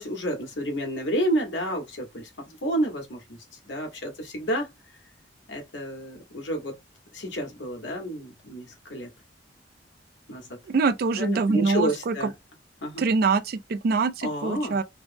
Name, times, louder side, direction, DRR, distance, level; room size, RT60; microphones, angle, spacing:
voice 1, 0.0-3.4 3.7-4.7 5.5-6.7 7.1-9.1 10.3-10.6 11.2-12.3 12.8-13.0 14.2-14.8, equal, 80° left, 1.2 m, -30 dB
voice 2, 10.7-12.1 13.0-14.8, right 4 dB, 55° right, 0.4 m, -24 dB
3.3 x 2.0 x 2.6 m
head